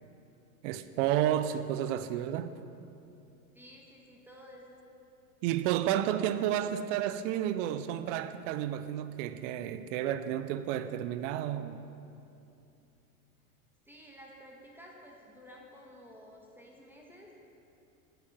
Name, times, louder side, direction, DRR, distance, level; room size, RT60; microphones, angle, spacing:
voice 1, 0.6-2.5 5.4-11.8, right 11 dB, 60° right, 0.7 m, -31 dB
voice 2, 3.5-4.8 6.1-6.5 13.8-17.3, equal, 5° right, 1.7 m, -53 dB
9.5 x 9.4 x 7.3 m
hypercardioid pair, 105°, 43 cm